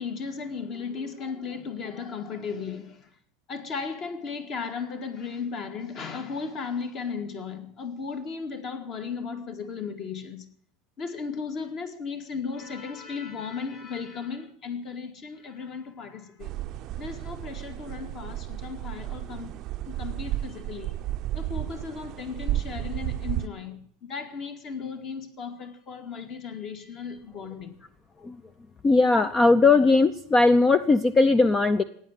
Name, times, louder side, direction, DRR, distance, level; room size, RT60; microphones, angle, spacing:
voice 1, 0.0-3.1 3.5-10.5 11.0-16.5 17.0-19.5 19.8-21.0 21.3-27.7, left 5 dB, 35° left, 2.2 m, -35 dB
sound 1, 16.4-23.5, right 14 dB, 40° right, 0.6 m, -33 dB
voice 2, 28.8-31.8, left 3 dB, 15° left, 0.6 m, -19 dB
16.0 x 9.4 x 9.0 m
supercardioid pair, 155°, 0 cm